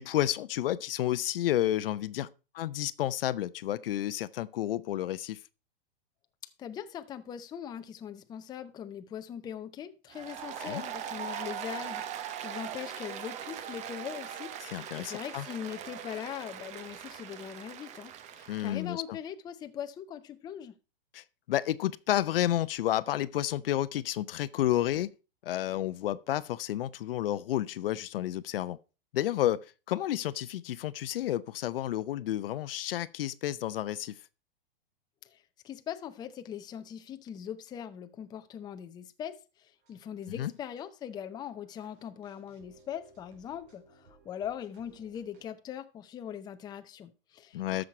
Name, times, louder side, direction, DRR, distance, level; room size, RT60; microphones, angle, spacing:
voice 1, 0.0-2.3 2.5-5.4 10.6-10.8 14.7-15.5 18.5-19.2 21.1-25.1 25.4-28.8 29.1-34.1 40.3-40.5 47.5-47.8, left 13 dB, 70° left, 0.7 m, -31 dB
voice 2, 6.6-20.8 35.2-47.8, left 9 dB, 15° left, 0.6 m, -41 dB
Applause, 10.1-18.8, right 9 dB, 25° right, 0.7 m, -41 dB
sound 1, 39.8-45.5, right 3 dB, 60° right, 3.6 m, -61 dB
13.0 x 6.4 x 4.3 m
hypercardioid pair, 140°, 30 cm